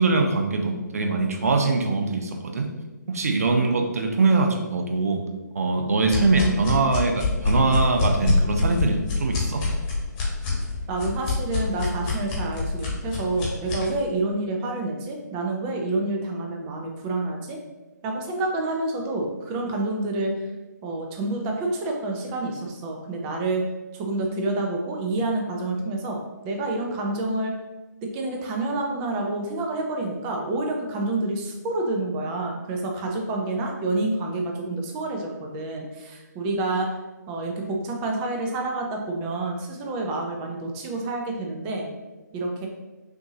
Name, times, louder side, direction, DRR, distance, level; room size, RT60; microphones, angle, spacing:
voice 1, 0.0-2.7 3.1-5.2 5.5-9.7, right 3 dB, 50° right, 4 dB, 0.6 m, -22 dB
sound 1, 6.1-13.9, left 3 dB, 20° left, 1.1 m, -26 dB
voice 2, 10.9-17.6 18.0-20.3 20.8-23.6 23.9-26.2 26.4-27.6 28.0-36.9 37.3-41.9 42.3-42.7, right 2 dB, 15° right, 1 dB, 0.4 m, -28 dB
5.9 x 2.6 x 2.8 m, 1.1 s
figure-of-eight pair, 140°, 10 cm